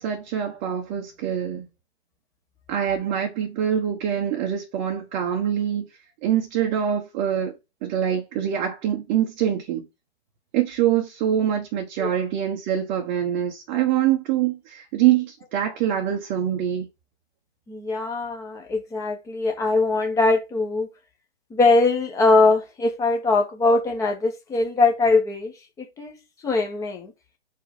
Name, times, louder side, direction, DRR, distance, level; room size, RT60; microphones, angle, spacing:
voice 1, 0.0-1.7 2.7-5.9 6.2-9.8 10.5-16.9, right 10 dB, 20° right, 0.9 m, -24 dB
voice 2, 17.7-20.9 21.5-25.5 25.8-26.2 26.4-27.1, left 3 dB, 10° left, 1.0 m, -21 dB
4.7 x 4.6 x 5.5 m
figure-of-eight pair, 130°, 34 cm